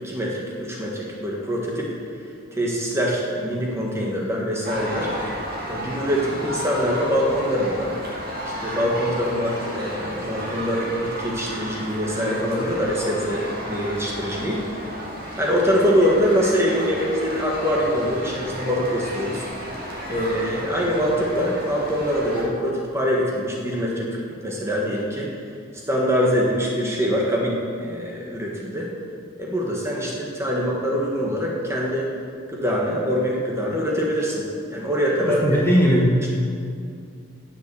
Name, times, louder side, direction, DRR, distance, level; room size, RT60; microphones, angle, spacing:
voice 1, 0.0-1.9 2.5-5.1 5.7-8.0 8.6-15.1 15.4-19.8 20.1-24.2 24.4-25.3 25.9-28.9 29.4-32.1 32.5-35.6, equal, 15° right, -3 dB, 1.4 m, -24 dB
sound 1, 4.6-22.4, equal, 45° right, 2.4 m, -33 dB
voice 2, 35.2-36.1, equal, 10° left, -4 dB, 1.3 m, -18 dB
10.0 x 7.5 x 6.9 m, 2.4 s
head